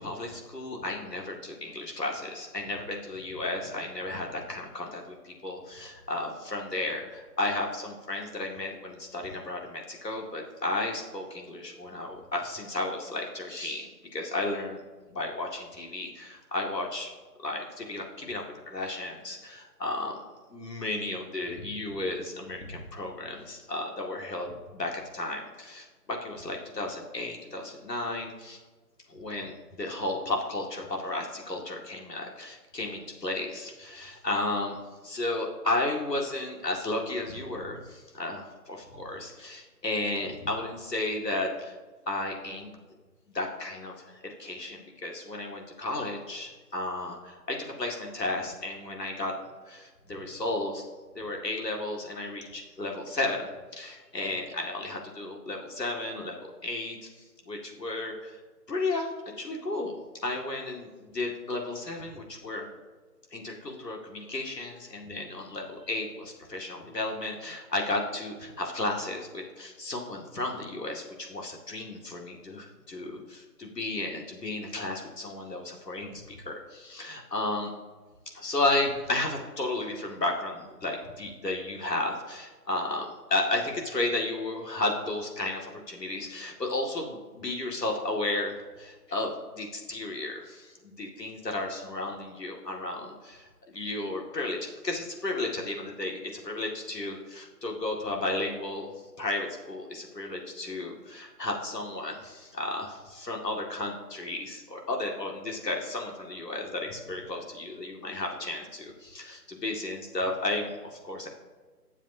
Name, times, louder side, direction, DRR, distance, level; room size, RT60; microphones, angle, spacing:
voice 1, 0.0-14.8 15.1-17.1 17.4-20.2 20.5-28.6 29.1-41.8 42.1-42.8 43.3-49.3 49.7-50.8 51.1-57.1 57.5-58.4 58.7-59.9 60.2-62.7 63.3-77.7 78.3-98.9 99.2-111.3, left 2 dB, 80° left, 1 dB, 2.2 m, -33 dB
19.0 x 7.3 x 2.8 m, 1.3 s
figure-of-eight pair, 170°, 48 cm